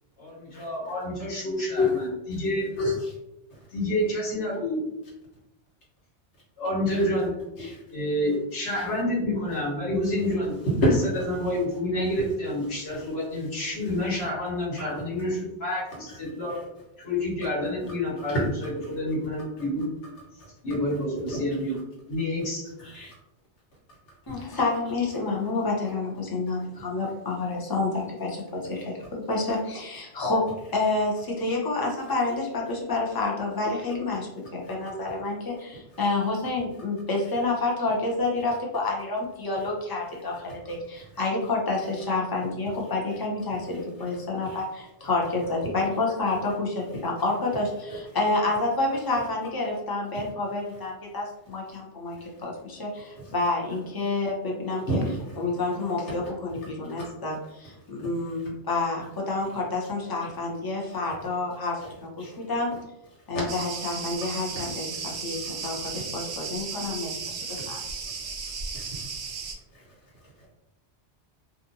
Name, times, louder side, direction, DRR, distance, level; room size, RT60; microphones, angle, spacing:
voice 1, 0.2-2.7 3.7-4.8 6.6-7.3 7.9-10.5 11.2-16.6 17.0-19.9 20.6-21.8 22.1-22.7, left 1 dB, 65° left, -6 dB, 1.4 m, -28 dB
voice 2, 2.8-3.1 6.9-7.0 7.6-7.8 8.7-8.9 10.8-10.9 11.1-11.2 12.9-13.9 16.1-16.2 16.5-16.6 18.3-18.4 18.8-18.9 21.3-21.4 22.8-23.1 24.3-24.6 34.6-34.7 44.4-44.6 47.9-48.0 54.9-55.0 55.3-55.4 57.0-57.1 62.2-62.3 63.3-63.5 64.5-64.7 65.3-65.4 65.8-66.0 68.7-68.8 69.7-69.9, left 1 dB, 85° left, -5 dB, 1.4 m, -30 dB
voice 3, 24.3-30.4 30.7-55.0 55.4-61.9 62.2-62.7 63.3-67.8, left 3 dB, 40° left, -1 dB, 0.3 m, -29 dB
Cricket, 63.5-69.5, right 5 dB, 65° right, 0.7 m, -35 dB
2.5 x 2.4 x 2.6 m, 0.89 s
omnidirectional pair, 1.2 m